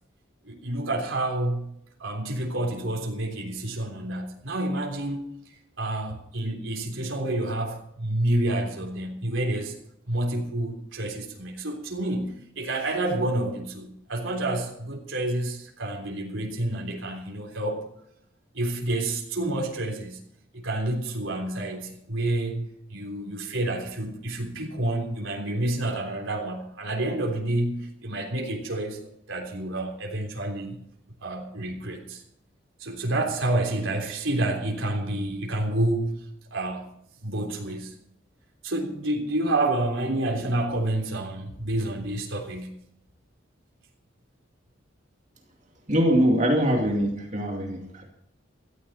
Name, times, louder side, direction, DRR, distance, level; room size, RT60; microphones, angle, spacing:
voice 1, 0.4-1.7 2.0-5.2 5.8-9.7 10.1-17.9 18.5-20.2 20.5-29.0 29.3-30.8 31.2-32.2 32.8-36.2 36.5-36.8 37.2-37.9 38.6-42.8, right 1 dB, 80° right, 1 dB, 3.4 m, -29 dB
voice 2, 45.9-48.0, equal, 35° right, 1 dB, 2.5 m, -23 dB
17.0 x 13.5 x 4.3 m, 0.73 s
head